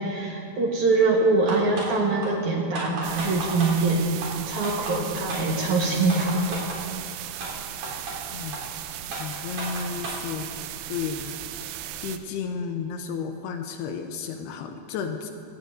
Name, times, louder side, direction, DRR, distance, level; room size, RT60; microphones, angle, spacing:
voice 1, 0.0-4.1 4.5-6.8, right 3 dB, 65° right, -1 dB, 2.1 m, -23 dB
sound 1, 1.5-1.9 2.2-2.3 2.7-3.7 4.2-4.3 4.6-4.9 5.3-5.4 5.8-6.8 7.4-7.5 7.8-8.1 8.5-8.6 9.1-10.2, right 2 dB, 45° right, 4.8 m, -33 dB
sound 2, 3.0-12.2, right 11 dB, 85° right, 2.8 m, -37 dB
voice 2, 9.2-11.4 12.0-15.3, left 6 dB, 80° left, 5 dB, 2.5 m, -33 dB
19.0 x 17.0 x 2.6 m, 2.5 s
omnidirectional pair, 5.1 m